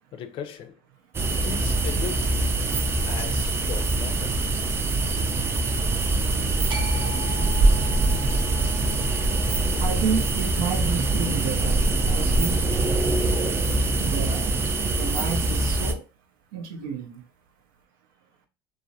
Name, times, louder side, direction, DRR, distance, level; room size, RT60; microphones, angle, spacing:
voice 1, 0.1-0.8 1.3-2.4 3.1-4.4, left 8 dB, 55° left, 0.5 m, -37 dB
sound 1, 1.1-15.9, right 2 dB, 20° right, 0.4 m, -23 dB
sound 2, 6.7-12.9, equal, 45° right, 0.8 m, -41 dB
voice 2, 9.8-12.6 14.0-14.6 15.0-16.1 16.5-17.2, right 6 dB, 85° right, 0.5 m, -31 dB
2.3 x 2.0 x 2.6 m
supercardioid pair, 95°, 11 cm